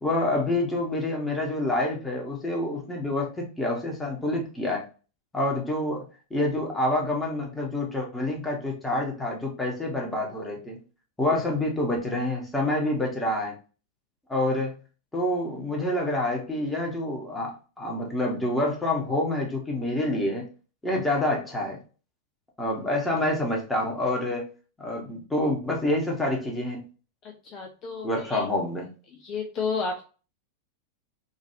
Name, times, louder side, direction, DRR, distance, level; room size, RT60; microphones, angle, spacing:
voice 1, 0.0-4.9 5.3-6.0 6.3-10.8 11.2-13.6 14.3-14.8 15.1-20.5 20.8-21.8 22.6-24.5 24.8-26.8 28.0-28.9, left 1 dB, 10° left, -1 dB, 1.3 m, -27 dB
voice 2, 27.2-28.5 29.2-30.0, left 4 dB, 35° left, 2 dB, 0.6 m, -32 dB
3.9 x 2.7 x 2.6 m, 0.35 s
figure-of-eight pair, 90°, 0 cm